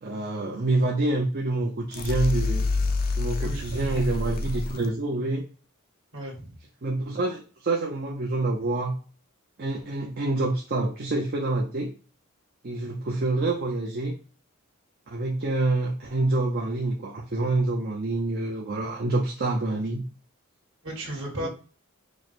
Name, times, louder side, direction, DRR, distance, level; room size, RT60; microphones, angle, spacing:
voice 1, 0.0-2.7 3.2-5.4 6.8-9.0 9.6-11.9 12.6-14.1 15.1-20.0 21.4-21.5, right 2 dB, 45° right, -1 dB, 0.5 m, -27 dB
sound 1, 1.9-4.9, left 3 dB, 40° left, 0.4 m, -27 dB
voice 2, 3.4-4.0 6.1-6.6 20.8-21.5, right 1 dB, 60° right, -2 dB, 1.7 m, -35 dB
4.7 x 2.1 x 4.1 m, 0.38 s
head